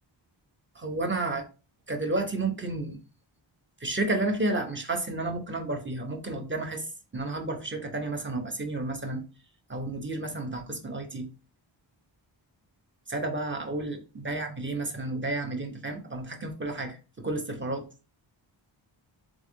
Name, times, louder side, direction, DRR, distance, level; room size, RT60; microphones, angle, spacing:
voice 1, 0.7-1.5 1.9-3.0 3.8-9.2 9.7-11.3 13.1-17.8, right 2 dB, 25° right, 3 dB, 1.0 m, -31 dB
3.7 x 3.5 x 3.3 m, 0.34 s
wide cardioid pair, 65°, 47 cm